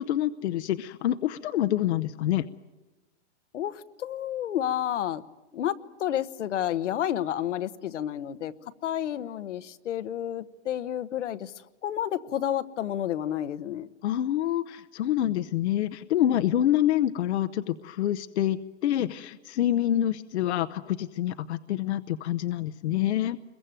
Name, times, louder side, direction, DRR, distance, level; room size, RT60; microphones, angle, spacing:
voice 1, 0.0-2.4 14.0-23.4, left 12 dB, 70° left, 10 dB, 0.9 m, -27 dB
voice 2, 3.5-5.2 5.5-8.5 8.8-11.5 11.8-13.9, left 11 dB, 90° left, 11 dB, 1.2 m, -30 dB
27.0 x 22.5 x 9.1 m, 1.1 s
supercardioid pair, 160°, 35 cm